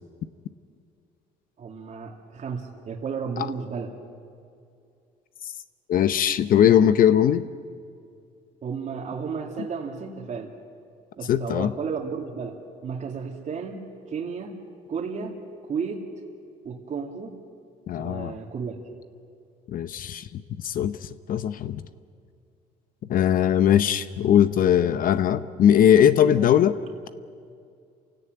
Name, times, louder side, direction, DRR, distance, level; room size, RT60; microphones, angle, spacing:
voice 1, 1.6-3.9 8.6-10.5 11.2-14.6 14.9-16.0 16.6-17.4 18.0-18.8 26.2-26.7, right 5 dB, 45° right, 0 dB, 2.4 m, -33 dB
voice 2, 5.9-7.5 11.3-11.7 17.9-18.3 19.7-21.8 23.1-26.8, left 9 dB, 55° left, 13 dB, 0.8 m, -20 dB
28.0 x 17.0 x 9.3 m, 2.4 s
cardioid pair, 110°, 17 cm